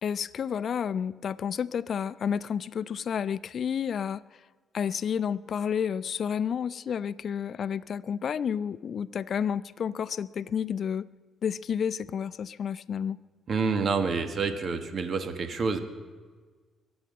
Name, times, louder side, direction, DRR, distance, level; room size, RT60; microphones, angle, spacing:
voice 1, 0.0-4.2 4.7-11.1 11.4-13.2, left 7 dB, 55° left, 14 dB, 0.5 m, -30 dB
voice 2, 13.5-15.8, right 5 dB, 50° right, 8 dB, 1.5 m, -28 dB
23.0 x 8.8 x 5.5 m, 1.4 s
cardioid pair, 90°, 0 cm